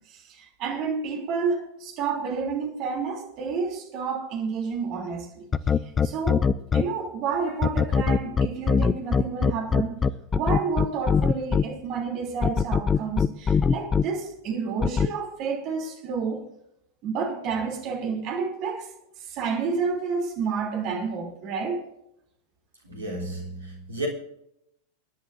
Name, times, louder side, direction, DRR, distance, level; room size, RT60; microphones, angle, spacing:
voice 1, 0.1-5.4 6.0-6.5 6.7-16.4 17.0-18.9 19.3-21.8, right 5 dB, 40° right, 3.2 m, -30 dB
sound 1, 5.5-6.8 7.6-11.6 12.4-14.0 14.8-15.1, left 6 dB, 20° left, 0.4 m, -21 dB
voice 2, 22.8-24.1, right 2 dB, 75° right, 3.6 m, -33 dB
25.5 x 10.5 x 2.7 m
figure-of-eight pair, 90°, 0 cm